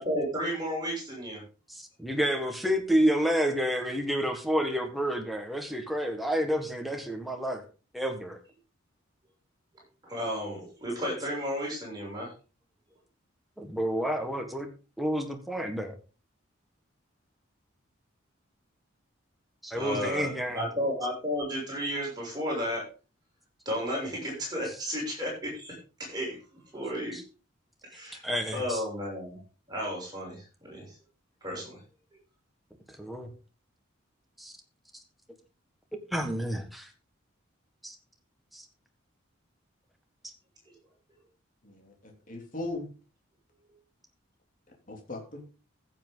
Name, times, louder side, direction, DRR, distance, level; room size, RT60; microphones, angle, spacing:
voice 1, 0.0-1.4 10.0-12.3 19.7-22.8 23.6-26.4 26.7-27.2 27.8-28.2 28.5-29.4 29.7-30.8 31.4-31.8, equal, 20° right, -3 dB, 6.8 m, -33 dB
voice 2, 1.7-7.6 7.9-8.4 13.6-14.7 15.0-15.9 19.6-20.6 27.1-27.2 28.2-28.8 32.9-33.3 34.4-34.5 36.1-36.9 37.8-37.9 38.5-38.6, equal, ahead, 3 dB, 1.6 m, -29 dB
voice 3, 41.6-42.9 44.9-45.4, left 2 dB, 40° left, 1 dB, 3.0 m, -38 dB
15.0 x 7.6 x 3.9 m, 0.34 s
head